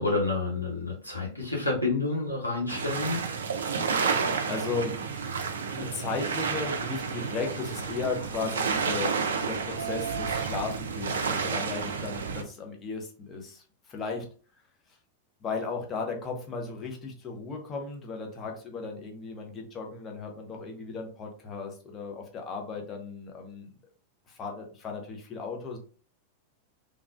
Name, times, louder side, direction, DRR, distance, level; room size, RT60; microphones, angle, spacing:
voice 1, 0.0-3.3, left 3 dB, 85° left, -2 dB, 0.9 m, -29 dB
sound 1, 2.7-12.4, right 5 dB, 70° right, 0.4 m, -30 dB
voice 2, 3.9-4.2 4.5-5.0 5.7-14.3 15.4-23.7 24.3-25.8, left 4 dB, 25° left, 1 dB, 0.8 m, -35 dB
3.4 x 2.3 x 2.4 m, 0.39 s
figure-of-eight pair, 90°, 0 cm